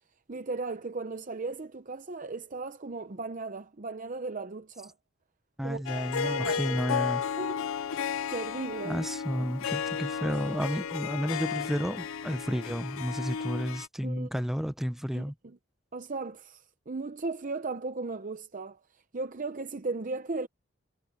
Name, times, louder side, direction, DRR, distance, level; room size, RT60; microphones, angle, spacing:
voice 1, 0.3-4.9 5.6-7.6 8.3-9.1 9.4-9.5 14.0-14.3 15.1-15.6 15.9-18.8 19.1-20.5, right 3 dB, 40° right, 0.7 m, -37 dB
voice 2, 5.6-7.2 8.8-15.3, equal, ahead, 0.7 m, -32 dB
Harp, 5.8-13.9, left 7 dB, 85° left, 0.5 m, -33 dB
head